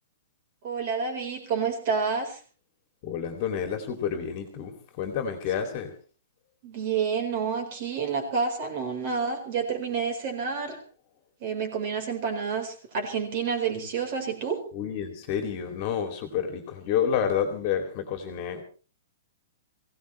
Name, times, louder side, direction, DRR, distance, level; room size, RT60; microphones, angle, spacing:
voice 1, 0.6-2.4 6.6-10.8 11.4-14.6, right 6 dB, 35° right, 5 dB, 4.4 m, -29 dB
voice 2, 3.0-5.9 14.7-18.6, left 8 dB, 25° left, 6 dB, 2.7 m, -29 dB
22.0 x 17.0 x 3.3 m, 0.36 s
hypercardioid pair, 180°, 0 cm